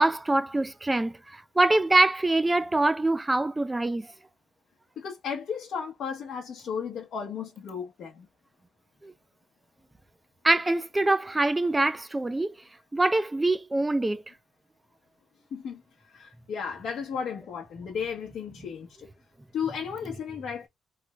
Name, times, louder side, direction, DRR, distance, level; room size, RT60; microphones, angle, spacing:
voice 1, 0.0-4.1 9.0-9.1 10.4-12.6 12.9-14.2, right 2 dB, 15° right, 0.4 m, -24 dB
voice 2, 5.0-8.3 15.5-19.1 19.5-20.7, left 7 dB, 70° left, 0.8 m, -34 dB
3.2 x 2.1 x 3.2 m
cardioid pair, 90°, 0 cm